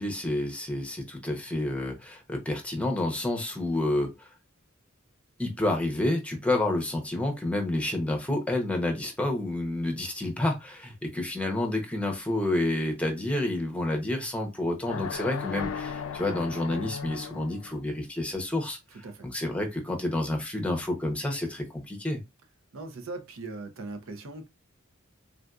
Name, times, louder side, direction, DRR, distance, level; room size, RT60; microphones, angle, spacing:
voice 1, 0.0-4.3 5.4-18.8 19.2-22.2, left 1 dB, 5° left, 0.7 m, -29 dB
sound 1, 14.9-17.7, left 6 dB, 85° left, 0.4 m, -36 dB
voice 2, 22.7-24.5, right 3 dB, 75° right, 0.6 m, -39 dB
3.7 x 2.5 x 2.3 m
head